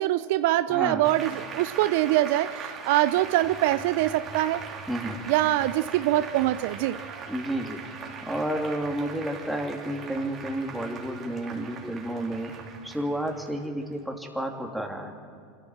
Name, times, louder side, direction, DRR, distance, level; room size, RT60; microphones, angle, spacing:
voice 1, 0.0-4.6 5.3-7.0, right 15 dB, 65° right, 15 dB, 0.5 m, -24 dB
voice 2, 0.7-1.1 4.9-5.2 7.3-7.8 8.2-12.5 12.8-15.1, right 1 dB, ahead, 2 dB, 2.9 m, -31 dB
Applause, 1.0-14.0, right 5 dB, 35° right, 3.4 m, -40 dB
25.5 x 14.0 x 7.5 m, 2.4 s
hypercardioid pair, 95°, 0 cm